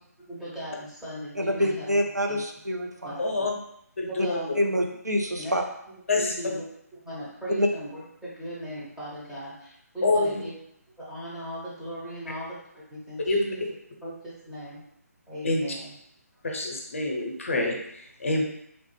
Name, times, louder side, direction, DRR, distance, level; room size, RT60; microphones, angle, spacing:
voice 1, 0.2-1.9 2.3-2.4 3.0-3.5 4.1-4.5 5.4-5.5 6.2-6.6 6.9-10.5 11.0-13.6 14.0-14.8 15.3-15.9 18.4-18.5, right 1 dB, 5° right, -10 dB, 0.6 m, -38 dB
voice 2, 1.4-3.2 4.6-5.6 7.6-7.7, equal, 85° right, 3 dB, 0.5 m, -26 dB
voice 3, 3.2-3.5 4.0-4.5 6.1-6.3 10.0-10.4 13.3-13.4 15.4-15.7 16.4-18.4, left 2 dB, 50° left, 1 dB, 0.6 m, -26 dB
2.9 x 2.0 x 3.1 m, 0.73 s
figure-of-eight pair, 145°, 9 cm